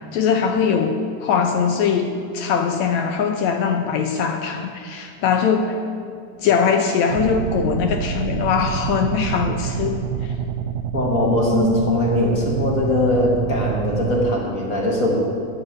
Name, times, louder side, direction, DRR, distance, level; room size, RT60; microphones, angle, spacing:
voice 1, 0.1-5.8 6.4-10.3, left 6 dB, 80° left, 5 dB, 1.7 m, -21 dB
sound 1, 7.1-14.4, right 8 dB, 85° right, 1.7 m, -27 dB
voice 2, 10.9-15.2, left 2 dB, 40° left, -1 dB, 1.2 m, -20 dB
11.0 x 7.3 x 8.6 m, 2.3 s
omnidirectional pair, 3.8 m